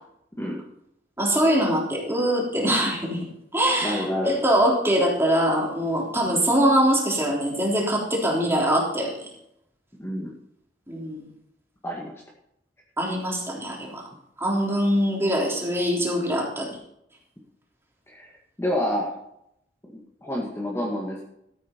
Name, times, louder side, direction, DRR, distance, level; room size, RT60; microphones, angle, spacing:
voice 1, 1.2-3.2 3.5-9.1 10.9-11.2 13.0-14.0 14.4-16.8, equal, 15° right, -2 dB, 3.5 m, -23 dB
voice 2, 3.8-4.3 6.2-6.4 10.0-10.3 11.8-12.2 18.1-18.3 18.6-19.2 20.2-21.2, left 1 dB, 15° left, -2 dB, 1.9 m, -28 dB
13.5 x 9.0 x 4.5 m, 0.76 s
head